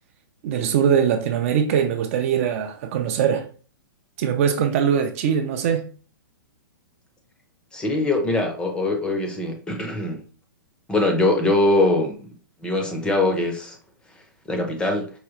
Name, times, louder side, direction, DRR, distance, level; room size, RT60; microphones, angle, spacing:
voice 1, 0.4-3.5 4.2-5.9, right 8 dB, 40° right, 0.4 m, -22 dB
voice 2, 7.7-10.2 10.9-12.3 12.6-13.8 14.5-15.1, left 2 dB, 10° left, 0.6 m, -22 dB
4.7 x 2.2 x 3.0 m
hypercardioid pair, 150°, 11 cm